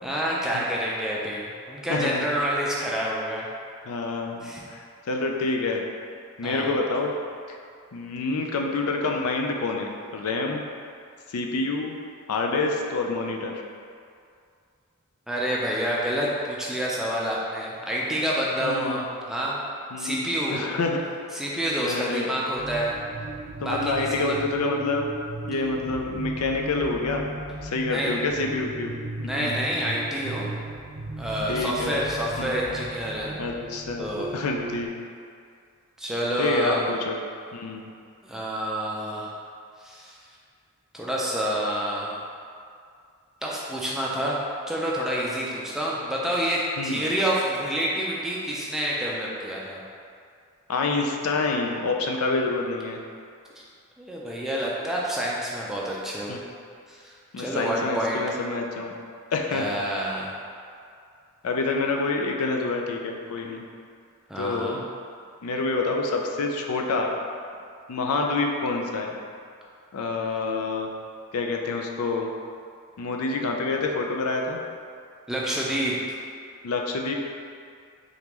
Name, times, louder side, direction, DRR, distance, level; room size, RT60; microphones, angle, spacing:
voice 1, 0.0-3.5 4.4-4.6 6.4-6.7 15.3-19.6 20.0-20.6 21.3-23.0 23.6-24.3 27.9-28.2 29.2-30.5 31.2-33.4 34.0-34.4 36.0-36.9 38.2-39.3 39.8-40.2 40.9-42.1 43.4-44.4 44.7-49.8 54.0-56.3 56.9-58.2 59.5-60.4 64.3-64.8 75.3-76.2, equal, ahead, -5 dB, 0.4 m, -28 dB
voice 2, 1.9-2.3 3.9-5.8 6.4-7.1 7.9-10.6 11.3-12.0 12.3-13.6 18.6-19.0 19.9-21.0 21.8-22.3 23.6-25.1 25.5-27.2 27.6-28.9 29.4-29.5 31.5-32.0 32.4-32.5 33.4-34.1 34.3-35.0 36.4-37.2 37.5-37.9 46.8-47.0 50.7-53.0 56.3-56.4 57.3-58.9 59.3-59.8 61.4-63.6 64.4-64.8 65.4-67.1 67.9-69.1 69.9-70.9 71.3-72.3 73.0-74.6 76.6-77.1, left 3 dB, 80° left, 2 dB, 0.4 m, -27 dB
sound 1, 22.6-34.9, right 2 dB, 75° right, 0.4 m, -36 dB
3.8 x 3.6 x 3.0 m, 2.3 s
head